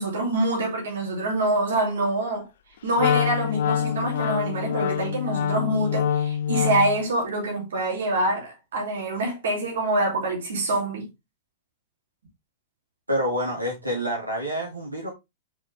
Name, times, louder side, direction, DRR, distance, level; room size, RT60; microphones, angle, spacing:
voice 1, 0.0-2.5 2.8-11.1, right 2 dB, 60° right, 2.8 m, -25 dB
Wind instrument woodwind instrument, 3.0-7.0, left 9 dB, 55° left, 0.5 m, -25 dB
voice 2, 13.1-15.1, equal, 85° right, 2.2 m, -27 dB
5.7 x 5.2 x 3.4 m
figure-of-eight pair, 100°, 0 cm